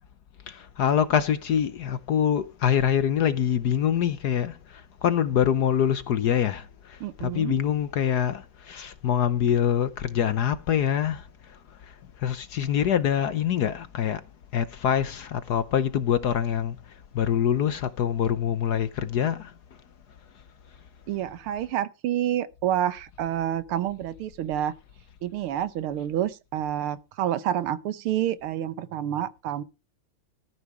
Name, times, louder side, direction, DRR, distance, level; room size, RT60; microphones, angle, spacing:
voice 1, 0.5-14.2 14.5-19.6, left 9 dB, 60° left, 1.1 m, -25 dB
voice 2, 7.0-7.6 21.1-24.7 25.2-29.6, right 11 dB, 85° right, 1.8 m, -28 dB
14.0 x 9.4 x 4.9 m
omnidirectional pair, 2.3 m